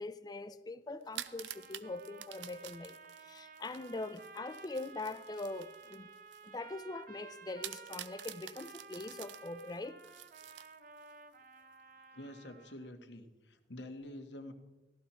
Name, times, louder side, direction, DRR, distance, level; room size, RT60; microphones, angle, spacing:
voice 1, 0.0-2.9 3.2-6.1 6.4-10.0, left 2 dB, 20° left, 0.4 m, -42 dB
sound 1, 1.0-6.5 6.9-7.0 7.6-11.1, right 12 dB, 85° right, 0.6 m, -49 dB
sound 2, 1.2-12.9, right 4 dB, 50° right, 0.7 m, -54 dB
voice 2, 12.1-14.5, left 1 dB, 80° left, 1.4 m, -47 dB
15.5 x 12.5 x 4.3 m
head